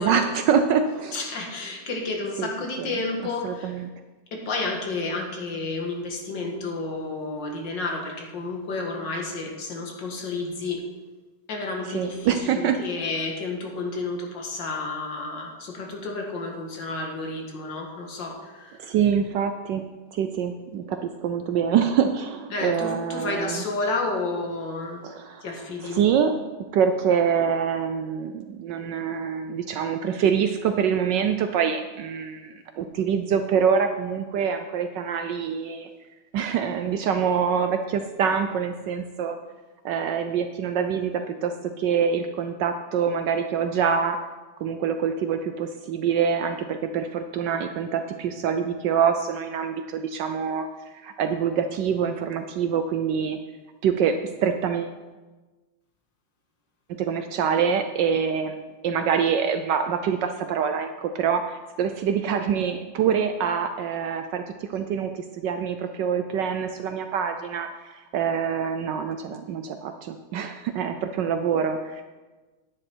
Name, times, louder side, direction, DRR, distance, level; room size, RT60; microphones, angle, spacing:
voice 1, 0.0-1.2 2.4-2.5 2.8-2.9 3.4-3.9 11.9-12.8 18.8-23.6 25.0-25.5 25.8-26.4 26.7-35.9 36.3-39.4 39.8-44.2 44.6-50.7 50.9-53.4 53.8-55.0 56.9-72.0, right 7 dB, 70° right, 7 dB, 1.1 m, -25 dB
voice 2, 1.1-3.8 4.3-10.8 11.5-18.8 22.5-25.1 25.4-26.0, left 3 dB, 60° left, 1 dB, 2.2 m, -31 dB
9.9 x 9.8 x 4.5 m, 1.2 s
omnidirectional pair, 2.3 m